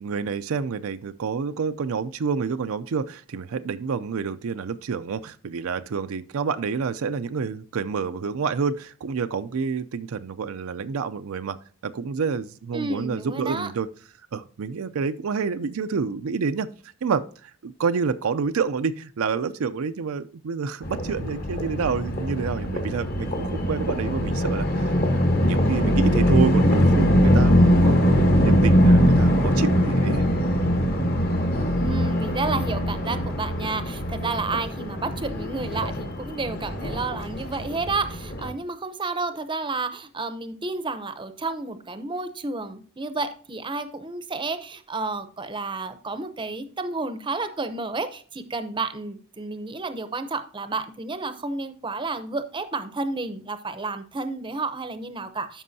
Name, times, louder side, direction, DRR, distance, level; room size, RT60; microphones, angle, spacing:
voice 1, 0.0-11.6 11.8-13.9 14.3-16.7 17.0-30.2, right 5 dB, 65° right, 10 dB, 0.4 m, -28 dB
voice 2, 12.7-13.7 31.7-55.6, right 3 dB, 20° right, 10 dB, 0.7 m, -31 dB
sound 1, 20.8-38.5, equal, 45° left, 1.2 m, -22 dB
12.5 x 5.4 x 2.7 m, 0.43 s
head